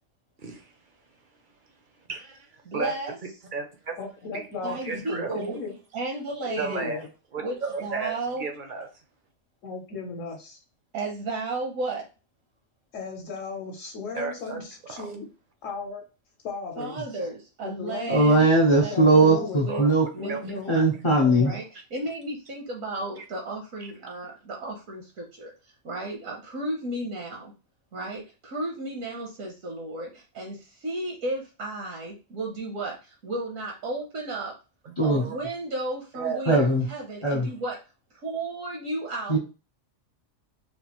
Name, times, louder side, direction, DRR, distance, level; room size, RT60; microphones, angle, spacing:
voice 1, 2.1-2.5 2.7-2.9 3.5-4.0 4.3-5.4 6.6-7.1 7.3-8.9 14.1-14.6 15.0-15.2 19.7-20.4 20.7-20.9 23.2-23.3 34.8-35.4 36.1-36.6, right 5 dB, 50° right, 5 dB, 0.6 m, -33 dB
voice 2, 2.6-3.2 4.6-5.6 5.9-6.9 7.4-8.5 10.9-12.0 16.8-18.5 18.8-19.8 20.1-20.6 21.4-27.5 27.9-34.5 35.0-37.8 38.2-39.4, right 2 dB, 75° right, 1 dB, 1.2 m, -34 dB
voice 3, 4.0-5.7 6.4-7.0 9.6-10.6 12.9-15.3 15.6-16.0 16.4-17.0 17.6-18.3 18.8-19.6 20.2-20.7 21.2-21.6, left 4 dB, 70° left, 1 dB, 1.1 m, -36 dB
voice 4, 18.1-20.1 20.7-21.5 35.0-35.2 36.5-36.9 37.2-37.5 39.3-39.4, right 2 dB, 45° left, 0 dB, 0.3 m, -19 dB
4.2 x 2.3 x 2.9 m, 0.31 s
omnidirectional pair, 1.4 m